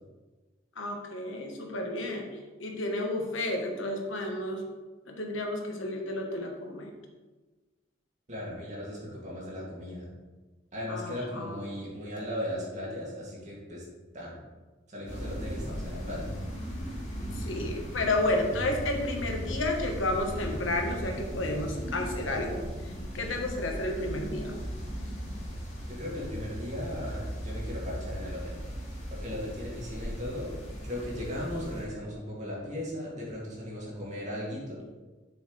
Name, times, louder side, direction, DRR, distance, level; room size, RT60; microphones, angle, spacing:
voice 1, 0.8-2.3 2.6-4.6 5.1-6.9 10.9-11.6 17.3-24.5, left 2 dB, 80° left, 2 dB, 1.3 m, -31 dB
voice 2, 8.3-10.1 10.7-13.8 14.1-14.4 14.9-16.3 25.9-28.6 29.1-30.5 30.8-34.8, left 1 dB, 40° right, -5 dB, 2.4 m, -37 dB
sound 1, 15.1-31.8, equal, 35° left, 2.0 m, -37 dB
7.7 x 6.3 x 3.3 m, 1.3 s
head